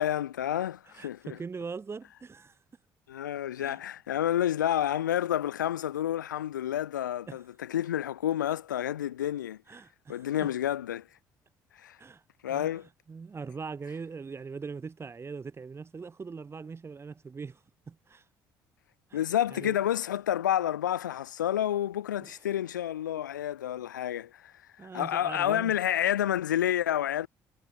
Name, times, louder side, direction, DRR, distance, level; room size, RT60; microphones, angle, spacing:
voice 1, 0.0-1.4 3.1-9.6 10.1-11.0 11.8-12.0 12.4-12.9 19.1-24.5 24.9-27.3, left 11 dB, 80° left, 0.4 m, -29 dB
voice 2, 0.9-2.6 3.6-3.8 7.3-7.4 9.7-10.5 12.0-12.2 12.5-12.7 13.1-17.6 17.9-18.2 19.1-19.2 19.5-19.8 22.2-22.4 24.8-25.7, right 5 dB, 25° right, 0.8 m, -41 dB
figure-of-eight pair, 50°, 10 cm